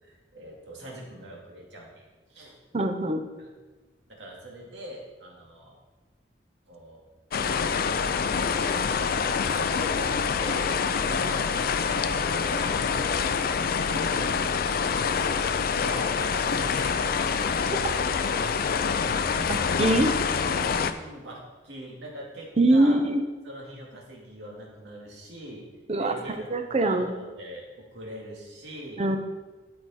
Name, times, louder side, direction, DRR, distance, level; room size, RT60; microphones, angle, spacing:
voice 1, 0.0-2.0 2.3-2.6 3.4-3.5 4.1-5.8 6.7-7.1 8.5-10.7 11.3-12.7 13.4-14.3 15.0-17.1 17.4-17.6 19.2-19.4 19.7-19.8 20.7-23.0 23.4-25.6 25.9-29.0, right 1 dB, 80° right, -3 dB, 2.3 m, -43 dB
voice 2, 2.7-3.2 11.2-11.3 19.4-20.1 22.6-23.2 25.9-27.1 29.0-29.2, right 1 dB, 35° right, 7 dB, 0.7 m, -23 dB
sound 1, 7.3-20.9, left 6 dB, 55° left, 0.4 m, -26 dB
12.5 x 4.8 x 4.3 m, 1.3 s
head